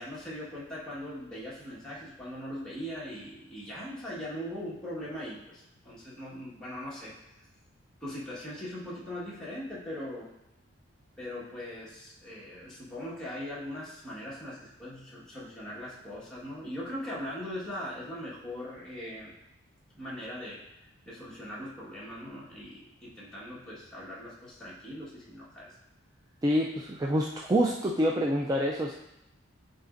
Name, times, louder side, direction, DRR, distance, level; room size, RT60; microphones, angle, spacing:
voice 1, 0.0-7.5 8.0-10.3 11.2-19.3 19.9-20.6 21.0-25.8, equal, 5° left, -8 dB, 1.5 m, -40 dB
voice 2, 26.4-28.9, equal, 20° right, 0 dB, 0.3 m, -27 dB
9.5 x 4.2 x 2.5 m, 0.90 s
head